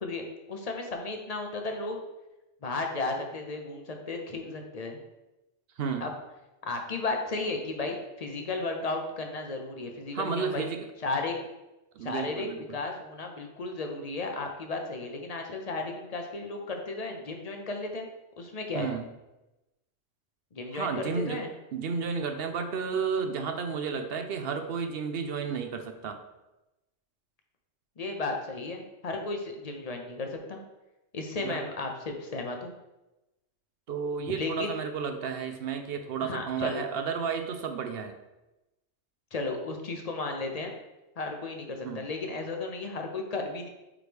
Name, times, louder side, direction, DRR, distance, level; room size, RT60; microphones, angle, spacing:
voice 1, 0.0-2.0 2.6-5.0 6.0-6.1 6.6-10.7 11.0-11.3 12.0-18.1 18.4-18.9 20.5-21.5 28.0-30.6 31.1-32.7 34.3-34.7 36.2-36.9 39.3-40.7 41.2-43.7, left 3 dB, 40° left, 3 dB, 0.7 m, -34 dB
voice 2, 5.8-6.1 10.1-10.9 12.0-12.8 18.7-19.1 20.7-21.4 21.7-26.2 31.4-31.6 33.9-38.2 41.8-42.1, right 6 dB, 60° right, 7 dB, 0.7 m, -32 dB
8.6 x 3.2 x 3.4 m, 0.98 s
omnidirectional pair, 1.3 m